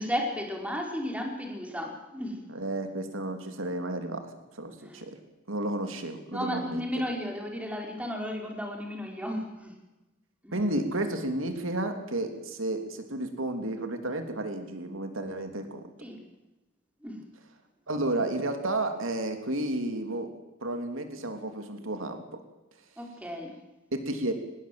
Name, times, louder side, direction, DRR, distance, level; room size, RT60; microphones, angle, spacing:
voice 1, 0.0-2.4 4.8-5.0 6.3-9.7 10.4-10.6 16.0-16.2 17.0-17.2 23.0-23.5, equal, 5° right, 1 dB, 4.7 m, -34 dB
voice 2, 2.5-5.2 5.5-6.8 10.5-15.9 17.9-20.3 20.6-22.2 23.9-24.3, right 1 dB, 85° right, 6 dB, 3.1 m, -32 dB
25.0 x 20.5 x 7.8 m, 1.1 s
head